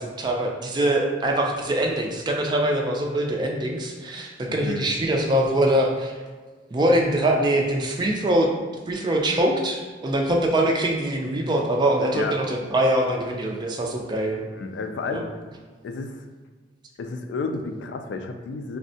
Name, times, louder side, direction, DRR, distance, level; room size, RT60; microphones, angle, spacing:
voice 1, 0.0-6.1 6.7-8.5 8.9-14.4 15.1-15.2, right 1 dB, 25° right, 1 dB, 0.4 m, -23 dB
voice 2, 4.5-4.9 12.1-12.4 14.5-15.3 15.8-16.2 17.0-18.8, left 3 dB, 85° left, 6 dB, 0.3 m, -31 dB
3.5 x 2.1 x 2.6 m, 1.4 s
head